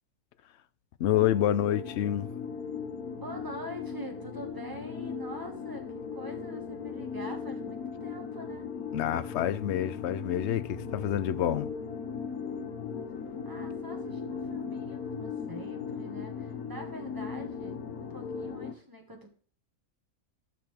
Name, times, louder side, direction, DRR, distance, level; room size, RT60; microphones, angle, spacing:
voice 1, 1.0-2.3 8.9-11.7, left 11 dB, 65° left, 0.7 m, -28 dB
sound 1, 1.1-18.7, left 6 dB, 85° left, 1.5 m, -38 dB
voice 2, 3.1-8.6 13.5-19.3, equal, 15° right, 2.0 m, -44 dB
14.0 x 6.0 x 3.4 m
omnidirectional pair, 1.5 m